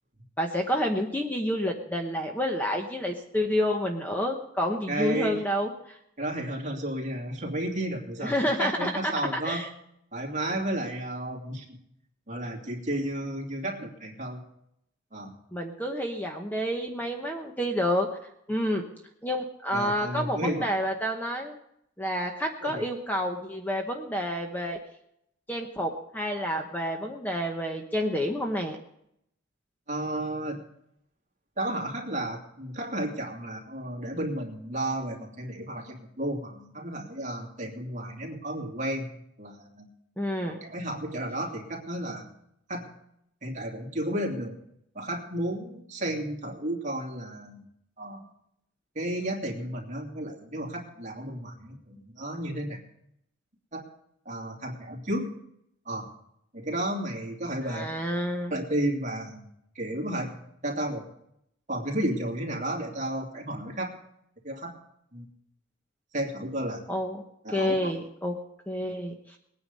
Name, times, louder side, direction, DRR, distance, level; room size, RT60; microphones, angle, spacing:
voice 1, 0.4-6.0 8.2-9.1 9.4-9.7 15.5-18.8 19.2-21.6 22.0-24.8 25.5-28.8 40.2-40.6 57.6-58.6 66.9-67.2 67.5-68.3 68.7-69.4, equal, 10° left, 2 dB, 1.0 m, -29 dB
voice 2, 4.9-5.4 6.2-9.7 10.1-11.8 12.3-14.4 15.1-15.4 19.7-20.8 22.6-22.9 29.9-30.6 31.6-39.9 40.4-42.2 42.7-42.9 43.4-44.6 44.9-47.6 48.0-48.2 48.9-52.8 53.7-53.8 54.3-55.3 55.9-56.1 56.5-57.9 58.5-59.5 59.7-61.1 61.7-63.9 64.4-64.7 65.1-65.3 66.1-66.8 67.4-67.9, right 1 dB, 35° right, 0 dB, 2.6 m, -32 dB
20.0 x 9.6 x 5.4 m, 0.76 s
head